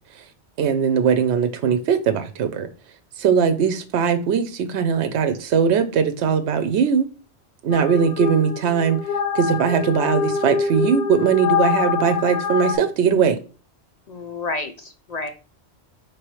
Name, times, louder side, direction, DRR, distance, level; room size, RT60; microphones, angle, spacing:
voice 1, 0.6-2.7 3.2-7.1 7.6-9.0 9.3-13.4, right 7 dB, 80° right, 0.9 m, -20 dB
sound 1, 7.7-12.8, left 6 dB, 90° left, 0.9 m, -25 dB
voice 2, 14.1-15.3, left 3 dB, 50° left, 0.5 m, -30 dB
5.2 x 3.1 x 3.0 m
omnidirectional pair, 1.1 m